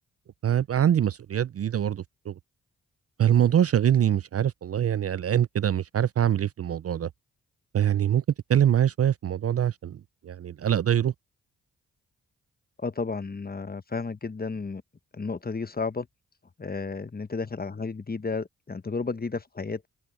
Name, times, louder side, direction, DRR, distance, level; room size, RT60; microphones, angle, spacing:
voice 1, 0.4-2.3 3.2-7.1 7.7-8.2 8.5-11.1, right 10 dB, 45° right, 0.5 m, -24 dB
voice 2, 12.8-14.8 15.1-16.1 16.6-19.9, left 4 dB, 25° left, 1.1 m, -32 dB
open air
supercardioid pair, 45°, 35 cm